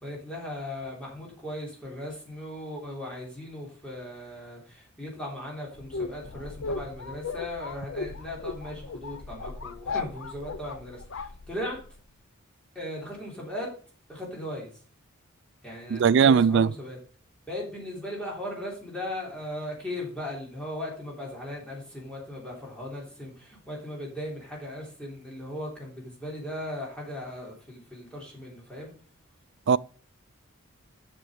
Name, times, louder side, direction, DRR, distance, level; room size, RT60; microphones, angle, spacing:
voice 1, 0.0-11.8 12.7-13.7 14.1-14.7 15.6-17.0 17.5-28.9, left 1 dB, 5° left, 3.4 m, -37 dB
sound 1, 5.7-12.0, left 4 dB, 65° left, 0.6 m, -37 dB
voice 2, 15.9-16.7 29.7-29.8, right 6 dB, 55° right, 0.3 m, -19 dB
7.5 x 6.2 x 6.5 m
head